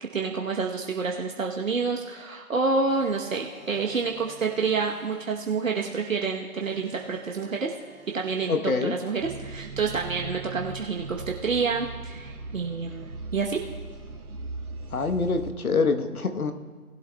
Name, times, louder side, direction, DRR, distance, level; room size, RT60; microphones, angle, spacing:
voice 1, 0.0-7.7 8.1-13.6, right 4 dB, 65° right, 0 dB, 1.1 m, -28 dB
sound 1, 2.8-8.5, right 3 dB, 15° right, 2.7 m, -50 dB
voice 2, 8.5-8.9 14.9-16.5, left 4 dB, 75° left, 8 dB, 1.1 m, -25 dB
sound 2, 9.2-15.5, right 3 dB, 80° right, 1.2 m, -39 dB
19.0 x 8.3 x 2.2 m, 1.5 s
figure-of-eight pair, 150°, 44 cm